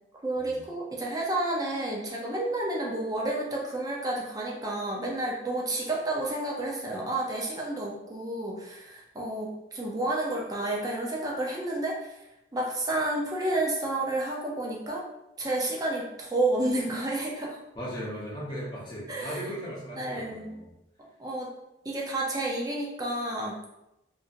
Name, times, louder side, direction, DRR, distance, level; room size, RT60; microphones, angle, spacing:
voice 1, 0.2-12.2 12.5-15.1 15.4-17.6 19.1-19.5 20.0-20.6 21.2-21.5 21.8-23.7, right 2 dB, 20° right, -2 dB, 0.4 m, -30 dB
voice 2, 17.8-20.7, equal, 25° left, -6 dB, 0.8 m, -37 dB
2.7 x 2.5 x 2.4 m, 0.89 s
head